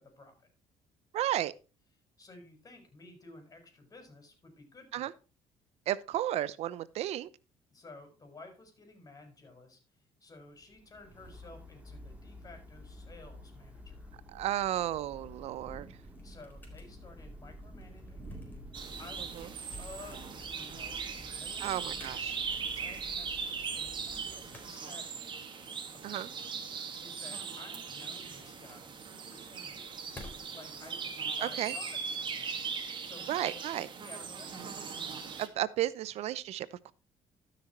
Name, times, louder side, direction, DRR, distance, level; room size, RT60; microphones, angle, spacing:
voice 1, 0.2-0.5 2.2-5.1 7.7-9.8 10.2-14.1 16.2-19.5 19.8-22.1 22.7-25.3 25.9-26.3 27.0-28.9 29.3-30.1 30.5-32.6 33.0-33.5 34.0-34.9, left 3 dB, 30° left, 4.9 m, -53 dB
voice 2, 1.1-1.5 4.9-5.1 5.9-7.3 14.3-16.0 19.4-19.5 21.6-22.4 26.0-26.3 31.4-31.7 33.3-33.9 35.4-36.9, right 13 dB, 70° right, 0.7 m, -33 dB
Thunder / Rain, 10.6-24.9, equal, 10° right, 2.3 m, -50 dB
sound 1, 16.0-30.8, left 1 dB, 15° left, 4.0 m, -57 dB
sound 2, 18.7-35.5, right 5 dB, 45° right, 2.1 m, -39 dB
12.5 x 6.3 x 4.4 m
supercardioid pair, 85°, 11 cm